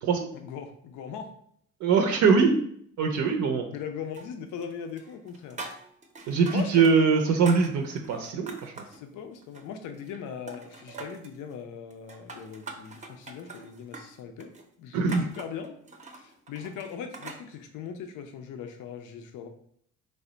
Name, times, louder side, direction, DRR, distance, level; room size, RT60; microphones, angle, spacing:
voice 1, 0.3-1.3 3.7-5.6 6.5-7.3 8.9-14.5 14.8-15.8 16.1-19.5, left 7 dB, 80° left, 6 dB, 0.5 m, -39 dB
voice 2, 1.8-2.6 3.0-3.7 6.3-8.7 14.9-15.2, right 5 dB, 75° right, 4 dB, 0.5 m, -22 dB
sound 1, 4.1-4.7 5.0-7.0 7.2-9.0 9.4-10.2 10.5-11.4 11.9-17.4, right 3 dB, 25° right, 0.5 m, -43 dB
3.3 x 2.1 x 3.8 m, 0.65 s
cardioid pair, 90°, 30 cm